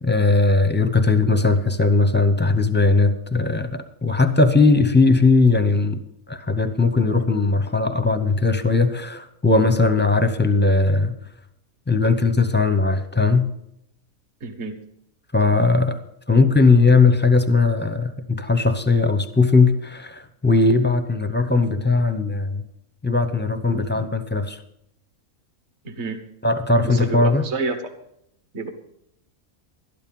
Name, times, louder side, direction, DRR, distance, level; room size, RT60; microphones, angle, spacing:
voice 1, 0.0-6.0 6.3-11.2 11.9-13.5 15.3-16.0 16.3-22.6 23.0-24.6 26.4-27.4, left 3 dB, 10° left, 10 dB, 0.5 m, -18 dB
voice 2, 14.4-14.7 25.8-26.2 26.8-27.8 28.5-28.7, right 4 dB, 55° right, 7 dB, 1.6 m, -28 dB
12.5 x 12.0 x 5.4 m, 0.75 s
omnidirectional pair, 1.5 m